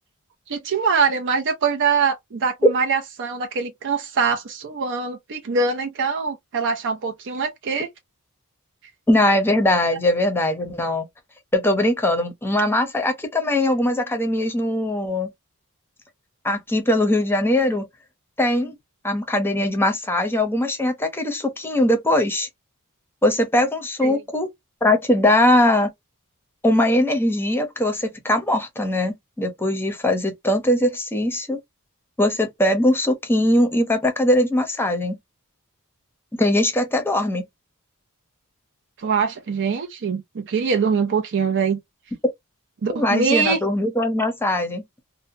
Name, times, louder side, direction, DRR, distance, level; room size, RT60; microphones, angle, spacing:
voice 1, 0.5-7.9 24.0-24.2 39.0-41.8 42.8-43.6, right 5 dB, 55° right, 0.5 m, -23 dB
voice 2, 9.1-11.1 11.5-15.3 16.4-17.9 18.4-18.7 19.0-22.5 23.2-24.5 24.8-25.9 26.6-31.6 32.2-35.2 36.4-37.4 42.9-44.8, left 1 dB, 10° left, 0.7 m, -21 dB
2.7 x 2.1 x 2.6 m
head